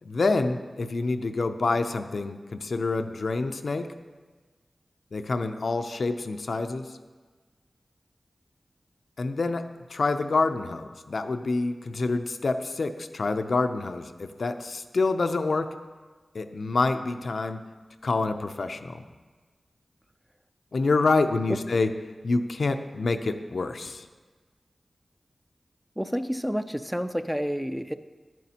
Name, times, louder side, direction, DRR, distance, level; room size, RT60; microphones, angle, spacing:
voice 1, 0.0-3.9 5.1-7.0 9.2-15.7 16.3-17.6 18.0-19.0 20.7-21.9 22.2-24.1, left 3 dB, 80° left, 8 dB, 0.4 m, -27 dB
voice 2, 26.0-27.9, equal, ahead, 11 dB, 0.3 m, -29 dB
10.5 x 9.1 x 2.8 m, 1.4 s
wide cardioid pair, 75°, 0 cm